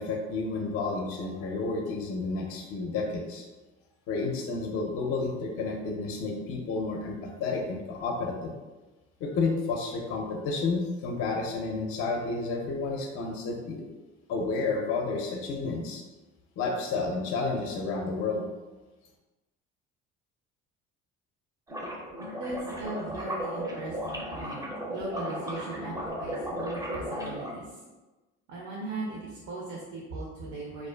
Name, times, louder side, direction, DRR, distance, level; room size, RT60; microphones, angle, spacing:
voice 1, 0.0-3.4 4.1-8.5 9.2-13.8 14.3-16.0 16.6-18.5, left 3 dB, 50° left, 2 dB, 0.4 m, -31 dB
sound 1, 21.7-27.6, equal, 10° right, 0.4 m, -35 dB
voice 2, 22.4-27.8 28.5-30.9, right 2 dB, 70° right, -5 dB, 0.6 m, -38 dB
2.4 x 2.3 x 2.2 m, 1.2 s
supercardioid pair, 80°, 30 cm